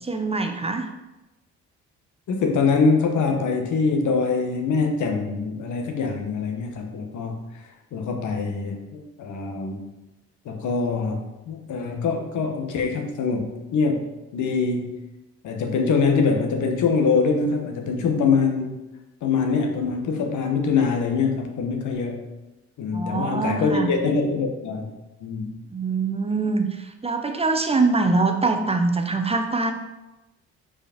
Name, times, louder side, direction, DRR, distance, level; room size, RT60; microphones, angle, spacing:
voice 1, 0.0-0.9 22.9-23.9 25.7-29.7, right 3 dB, 20° right, 5 dB, 0.8 m, -23 dB
voice 2, 2.3-7.4 7.9-9.8 10.4-15.0 15.4-18.8 19.2-22.3 22.8-24.9 25.2-25.5, left 4 dB, 75° left, 3 dB, 1.2 m, -24 dB
5.1 x 5.0 x 5.0 m, 1.0 s
cardioid pair, 90°, 30 cm